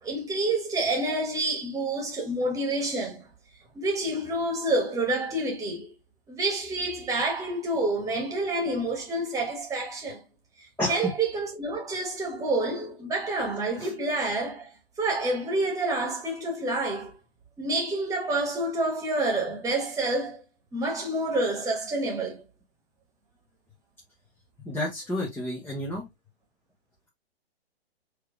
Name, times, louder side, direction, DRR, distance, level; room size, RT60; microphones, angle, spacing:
voice 1, 0.0-3.3 3.7-5.9 6.3-10.2 10.9-17.2 17.6-20.4 20.7-22.4, right 2 dB, 10° right, 1.8 m, -28 dB
voice 2, 10.8-11.1 13.8-13.9 24.6-26.1, left 1 dB, 5° left, 1.3 m, -30 dB
4.8 x 3.3 x 3.2 m
hypercardioid pair, 125°, 32 cm